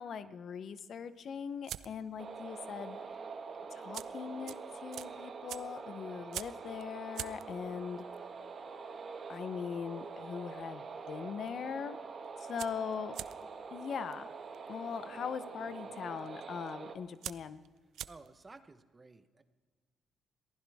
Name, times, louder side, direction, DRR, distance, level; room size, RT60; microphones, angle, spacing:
voice 1, 0.0-3.0 3.7-8.0 9.3-12.0 12.4-13.1 13.7-14.3 14.7-17.6, left 7 dB, 60° left, 13 dB, 0.8 m, -40 dB
sound 1, 0.7-2.2 2.5-2.9 3.1-3.2 3.7-10.7 11.0-11.5 11.8-11.9 12.1-18.6, right 11 dB, 75° right, 0.4 m, -47 dB
sound 2, 2.2-17.0, right 5 dB, 45° right, 1.5 m, -45 dB
voice 2, 18.1-19.4, right 3 dB, 25° right, 10 dB, 1.0 m, -54 dB
22.5 x 15.0 x 3.5 m, 1.4 s
cardioid pair, 90°, 0 cm